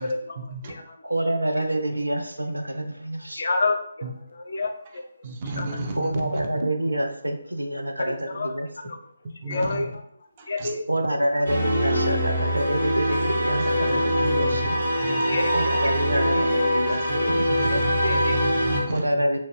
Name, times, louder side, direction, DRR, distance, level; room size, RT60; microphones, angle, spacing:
voice 1, 0.0-1.0 3.4-5.0 5.5-5.8 8.0-8.5 8.9-9.0 9.5-10.0 10.5-10.8 15.3-15.5 17.7-18.4, left 3 dB, 60° left, 5 dB, 0.4 m, -29 dB
voice 2, 1.0-3.4 5.9-8.9 10.9-14.8 15.5-17.3 18.9-19.4, right 1 dB, 90° right, 6 dB, 0.4 m, -27 dB
voice 3, 5.2-6.1 6.4-6.5 9.4-9.8 14.2-14.3 15.0-15.4 17.1-18.9, right 2 dB, 30° right, 1 dB, 0.5 m, -32 dB
sound 1, 11.4-18.8, equal, 70° right, 1.4 m, -23 dB
2.7 x 2.3 x 3.0 m, 0.70 s
figure-of-eight pair, 150°, 0 cm